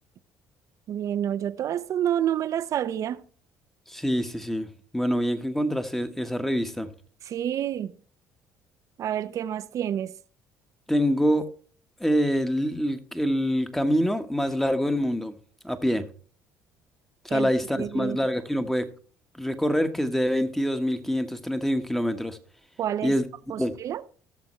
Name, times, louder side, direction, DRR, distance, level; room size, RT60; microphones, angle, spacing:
voice 1, 0.9-3.3 7.2-7.9 9.0-10.2 17.3-17.5 17.7-18.2 22.8-23.2 23.5-24.0, right 10 dB, 55° right, 0.6 m, -28 dB
voice 2, 3.9-6.9 10.9-11.5 12.0-15.4 15.6-16.1 17.2-18.9 19.3-22.4 23.0-23.2 23.6-23.7, equal, 5° left, 1.3 m, -25 dB
17.0 x 6.9 x 3.2 m
hypercardioid pair, 65°, 7 cm